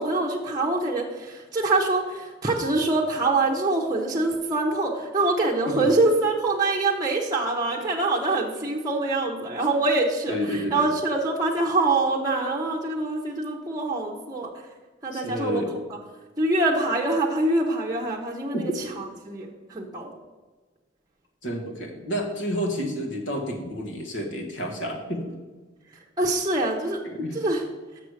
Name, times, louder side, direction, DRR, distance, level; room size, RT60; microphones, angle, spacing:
voice 1, 0.0-14.5 15.0-15.6 16.4-18.7 19.0-20.1 26.2-27.0 27.3-27.6, right 2 dB, 20° right, -1 dB, 0.8 m, -24 dB
voice 2, 10.3-10.9 15.1-15.7 18.5-18.7 21.4-25.3 27.0-27.4, equal, 70° left, 2 dB, 1.5 m, -30 dB
6.6 x 6.1 x 6.4 m, 1.3 s
head